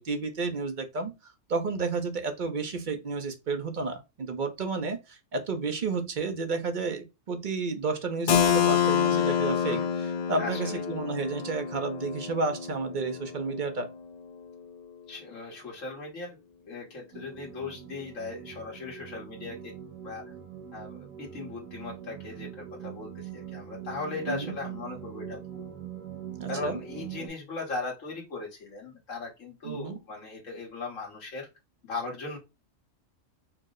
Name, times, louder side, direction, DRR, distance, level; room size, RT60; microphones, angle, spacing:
voice 1, 0.0-13.9 24.3-24.5 26.4-26.8 29.6-30.0, right 4 dB, 45° right, 0.7 m, -31 dB
Keyboard (musical), 8.3-13.8, left 8 dB, 60° left, 0.6 m, -27 dB
voice 2, 10.4-10.8 15.1-16.4 16.7-19.7 20.0-20.2 20.7-25.6 26.5-31.5 31.8-32.4, left 3 dB, 85° left, 1.6 m, -38 dB
sound 1, 17.1-27.3, right 9 dB, 80° right, 1.8 m, -42 dB
4.6 x 2.0 x 3.6 m
omnidirectional pair, 1.3 m